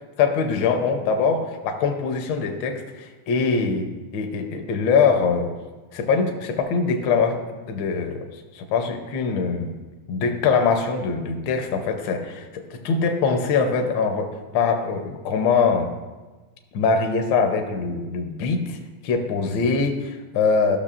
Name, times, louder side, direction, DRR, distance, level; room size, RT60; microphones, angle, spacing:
voice 1, 0.2-5.5 5.9-7.4 7.7-8.3 8.5-9.8 10.1-15.9 16.7-18.8 19.0-20.8, left 5 dB, 70° left, 4 dB, 1.4 m, -23 dB
13.5 x 6.2 x 2.4 m, 1.2 s
omnidirectional pair, 2.3 m